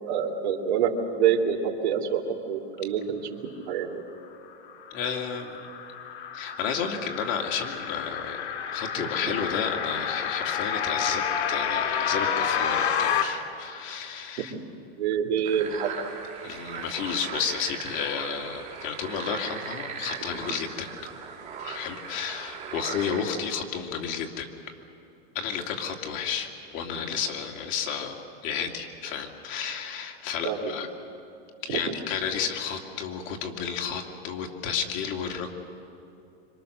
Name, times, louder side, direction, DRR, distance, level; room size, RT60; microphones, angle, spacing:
voice 1, 0.1-2.2 2.5-4.0 9.0-9.1 14.5-14.6 15.0-15.9 30.4-30.7, right 7 dB, 80° right, 1 dB, 3.2 m, -26 dB
sound 1, 4.9-13.2, left 8 dB, 85° left, 2.7 m, -29 dB
voice 2, 4.9-5.6 6.3-11.2 11.5-14.5 16.4-21.1 21.6-24.5 25.3-30.9 31.6-35.5, left 7 dB, 40° left, 2 dB, 2.5 m, -32 dB
sound 2, 15.4-23.2, right 6 dB, 20° right, 3.7 m, -38 dB
26.5 x 25.0 x 6.7 m, 2.7 s
supercardioid pair, 150°, 32 cm